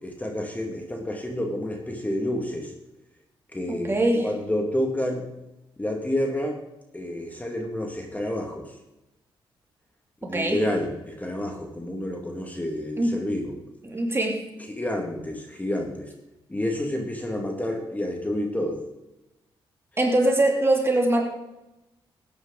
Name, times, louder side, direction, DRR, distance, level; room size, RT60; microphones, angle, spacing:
voice 1, 0.0-2.7 3.5-5.3 5.8-6.6 6.9-8.7 10.2-13.6 14.7-16.1 16.5-18.8, left 1 dB, 15° left, 2 dB, 2.2 m, -29 dB
voice 2, 3.7-4.3 10.2-10.6 13.0-13.1 13.8-14.4 20.0-21.2, right 1 dB, 25° right, 1 dB, 3.0 m, -22 dB
14.0 x 9.8 x 4.0 m, 0.95 s
cardioid pair, 70°, 10 cm